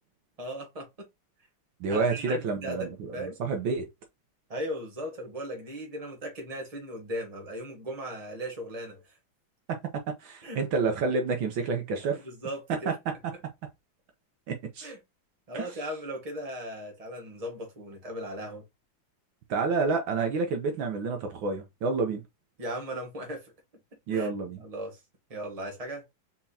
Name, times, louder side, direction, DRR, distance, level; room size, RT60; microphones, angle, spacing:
voice 1, 0.4-1.1 1.9-3.4 4.5-9.0 10.4-10.6 12.1-12.9 14.8-15.0 15.5-18.6 22.6-23.5 24.1-24.3 24.6-25.0 25.3-26.0, equal, 20° right, 1.4 m, -37 dB
voice 2, 1.8-3.9 9.7-12.2 14.5-14.9 15.5-15.7 19.5-22.2 24.1-24.6, right 4 dB, 70° right, 1.6 m, -29 dB
4.4 x 4.2 x 2.8 m
omnidirectional pair, 2.3 m